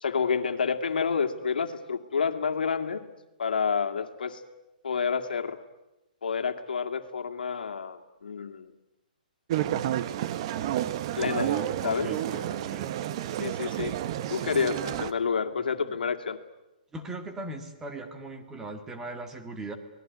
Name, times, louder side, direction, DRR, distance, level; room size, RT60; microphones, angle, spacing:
voice 1, 0.0-3.0 3.4-4.4 4.8-5.6 6.2-8.7 11.2-11.5 11.8-12.1 13.4-13.9 14.3-16.4, left 6 dB, 85° left, 6 dB, 2.3 m, -29 dB
sound 1, 9.5-15.1, right 12 dB, 35° right, 1.0 m, -30 dB
voice 2, 11.2-12.9 15.8-16.0 16.9-19.7, right 2 dB, 10° right, 5 dB, 2.0 m, -39 dB
28.0 x 19.5 x 9.5 m, 0.97 s
hypercardioid pair, 160°, 5 cm